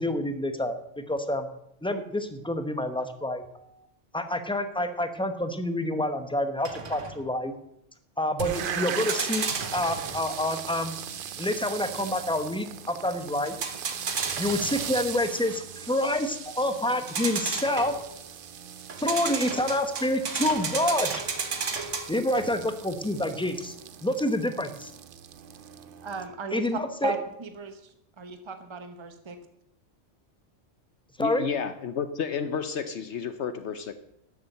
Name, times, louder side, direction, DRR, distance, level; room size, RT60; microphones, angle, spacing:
voice 1, 0.0-1.5 1.8-3.7 4.1-7.5 8.2-9.5 9.7-10.9 11.4-13.6 14.4-17.9 19.0-21.2 22.1-23.7 24.0-24.9 26.5-27.1 31.2-31.4, left 1 dB, 5° left, 8 dB, 1.0 m, -28 dB
sound 1, 6.6-7.2 9.0-10.3 13.5-15.0 17.1-18.1 18.9-22.6, right 5 dB, 85° right, 1.7 m, -33 dB
sound 2, 8.4-26.3, right 8 dB, 55° right, 0.8 m, -39 dB
voice 2, 26.0-27.8 28.2-29.4, right 4 dB, 25° right, 8 dB, 1.0 m, -35 dB
voice 3, 31.2-33.9, left 6 dB, 70° left, 10 dB, 1.1 m, -31 dB
12.5 x 7.3 x 8.0 m, 0.76 s
omnidirectional pair, 1.2 m